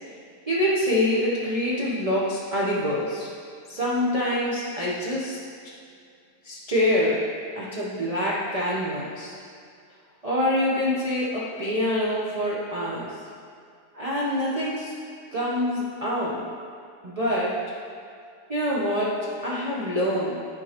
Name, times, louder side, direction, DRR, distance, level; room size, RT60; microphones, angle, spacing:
voice 1, 0.5-3.3 3.7-5.4 6.4-7.2 7.5-9.4 10.2-13.1 13.9-14.9 15.3-16.4 17.0-17.5 18.5-20.3, left 1 dB, 50° right, -7 dB, 0.4 m, -25 dB
10.5 x 4.6 x 2.9 m, 2.3 s
omnidirectional pair, 1.9 m